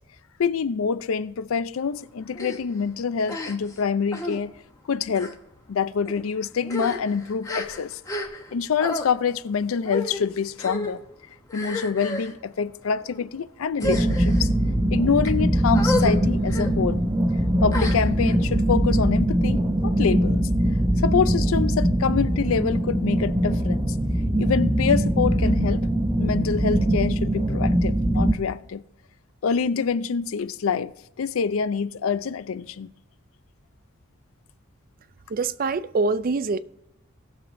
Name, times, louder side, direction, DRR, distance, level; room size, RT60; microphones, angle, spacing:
voice 1, 0.4-4.5 4.9-5.3 5.7-8.0 8.5-11.0 11.5-14.5 14.9-17.0 17.6-20.5 21.0-23.9 24.4-25.9 26.2-28.8 29.4-32.9, left 6 dB, 80° left, 0.4 m, -26 dB
sound 1, 2.4-2.6 3.3-3.8 4.1-4.4 5.1-5.4 6.1-6.2 6.6-8.5 8.8-9.1 9.9-10.2 10.6-11.0 11.5-12.3 13.0-13.3 13.7-14.4 15.0-15.3 15.7-16.2 16.5-16.7 17.7-18.4, left 1 dB, 15° left, 1.0 m, -31 dB
sound 2, 13.8-28.3, right 1 dB, 20° right, 0.8 m, -22 dB
voice 2, 35.3-36.6, right 3 dB, 45° right, 0.4 m, -24 dB
19.0 x 6.9 x 2.6 m
head